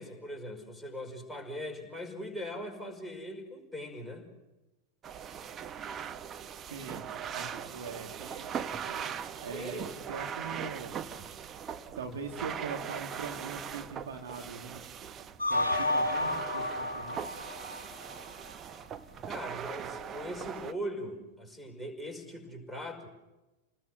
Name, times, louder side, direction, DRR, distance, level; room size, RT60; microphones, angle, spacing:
voice 1, 0.0-4.3 9.5-9.9 19.2-23.1, equal, ahead, 6 dB, 5.4 m, -40 dB
sound 1, 5.0-20.7, right 8 dB, 25° right, 1.1 m, -40 dB
voice 2, 6.7-7.0 7.3-8.5 8.8-9.1 9.4-10.9 12.0-14.8 15.5-17.2, right 5 dB, 60° right, 3 dB, 2.7 m, -41 dB
sound 2, 15.4-18.5, left 2 dB, 80° left, 1.0 m, -31 dB
30.0 x 20.0 x 6.7 m, 1.0 s
figure-of-eight pair, 90°, 0 cm